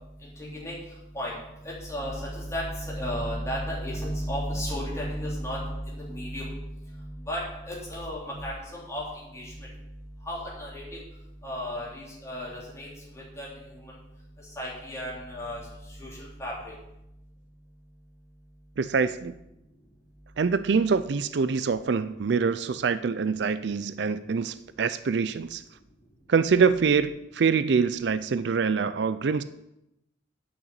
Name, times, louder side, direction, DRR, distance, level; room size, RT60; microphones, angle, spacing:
voice 1, 0.2-0.8 1.1-1.3 1.6-9.0 9.3-9.5 10.3-11.0 11.4-12.9 13.1-13.8 14.6-15.6 16.0-16.7, equal, 15° left, -5 dB, 3.8 m, -34 dB
voice 2, 18.8-19.3 20.4-25.6 26.3-29.4, right 5 dB, 60° right, 14 dB, 0.4 m, -25 dB
8.7 x 6.7 x 8.4 m, 0.88 s
head